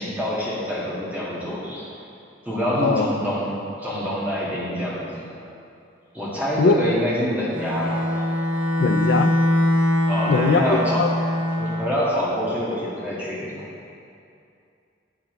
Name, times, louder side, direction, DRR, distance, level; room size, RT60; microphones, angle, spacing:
voice 1, 0.0-1.9 2.5-5.3 6.1-8.1 10.1-11.1 11.6-13.6, equal, 10° right, -8 dB, 2.2 m, -26 dB
Bowed string instrument, 7.5-12.0, left 1 dB, 80° right, 1.1 m, -22 dB
voice 2, 8.8-9.4 10.3-11.1, left 5 dB, 70° left, 9 dB, 0.3 m, -21 dB
10.5 x 9.1 x 3.4 m, 2.5 s
head